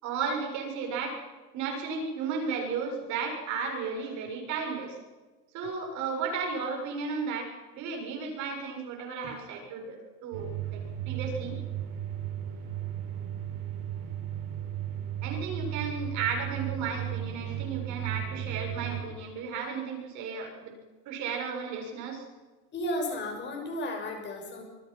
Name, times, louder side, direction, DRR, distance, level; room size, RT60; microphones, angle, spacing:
voice 1, 0.0-1.2 1.5-5.0 5.5-10.8 11.1-11.6 15.2-20.7 21.1-22.3, right 5 dB, 40° right, 2 dB, 6.9 m, -34 dB
sound 1, 10.3-19.0, right 10 dB, 75° right, 6.3 m, -35 dB
voice 2, 22.7-24.6, left 1 dB, 25° left, 3 dB, 6.6 m, -33 dB
27.0 x 22.5 x 5.7 m, 1.3 s
supercardioid pair, 170°, 46 cm